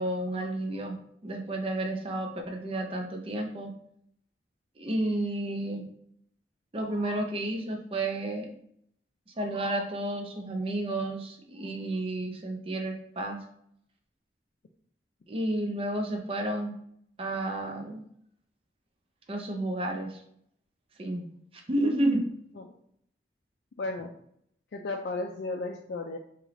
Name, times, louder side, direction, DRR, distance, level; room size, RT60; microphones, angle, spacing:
voice 1, 0.0-3.7 4.8-5.9 6.7-8.5 9.4-13.4 15.3-16.8 17.2-18.0 19.3-20.2 21.0-21.3 21.5-22.3, right 1 dB, 30° right, 2 dB, 0.5 m, -31 dB
voice 2, 23.8-24.1 24.7-26.2, left 3 dB, 70° left, 1 dB, 0.4 m, -34 dB
3.2 x 3.0 x 3.6 m, 0.69 s
head